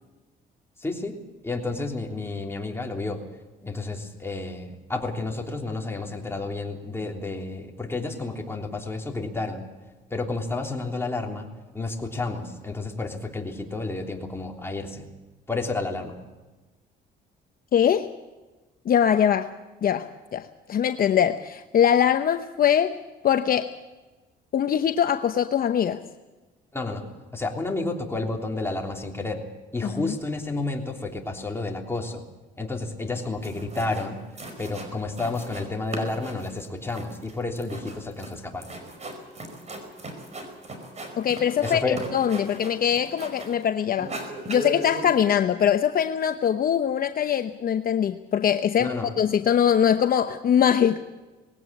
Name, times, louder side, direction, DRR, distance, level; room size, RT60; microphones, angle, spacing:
voice 1, 0.8-1.1 1.4-3.2 3.6-9.7 10.1-11.5 11.7-15.1 15.5-16.2 26.7-27.1 27.3-29.4 29.7-32.2 32.6-34.2 34.6-38.7 41.6-42.0 48.8-49.1, left 3 dB, 15° left, 1 dB, 3.3 m, -31 dB
voice 2, 17.7-18.1 18.9-19.5 19.8-23.0 23.2-23.7 24.5-26.0 29.8-30.1 41.2-41.8 42.1-44.1 44.5-51.0, left 9 dB, 50° left, 8 dB, 0.9 m, -22 dB
sound 1, 33.4-34.1 34.4-35.7 35.9-43.6 43.9-45.2, right 1 dB, 35° right, 4.9 m, -38 dB
20.0 x 17.0 x 8.6 m, 1.2 s
cardioid pair, 95°, 19 cm